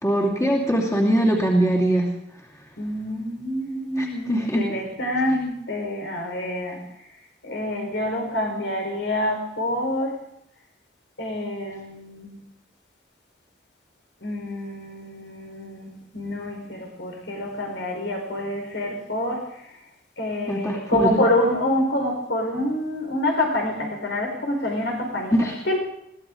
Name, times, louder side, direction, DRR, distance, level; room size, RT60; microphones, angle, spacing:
voice 1, 0.0-2.1 4.0-4.6 20.5-21.2 25.3-25.6, equal, 15° left, -3 dB, 2.6 m, -21 dB
voice 2, 2.8-6.8 7.4-10.2 11.2-12.4 14.2-19.5 20.2-25.8, left 1 dB, 80° left, 2 dB, 4.6 m, -27 dB
22.5 x 17.0 x 3.9 m, 0.77 s
head